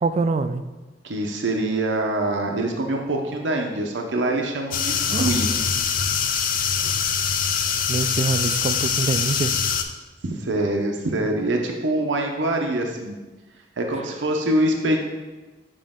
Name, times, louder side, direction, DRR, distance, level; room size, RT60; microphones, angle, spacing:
voice 1, 0.0-0.6 5.1-5.3 7.9-9.6, right 3 dB, 35° right, 11 dB, 0.3 m, -24 dB
voice 2, 1.0-5.5 10.2-13.2 13.8-15.0, right 1 dB, 80° right, 2 dB, 0.8 m, -24 dB
sound 1, 4.7-9.8, left 7 dB, 50° left, 0.5 m, -23 dB
7.5 x 5.1 x 3.7 m, 1.2 s
head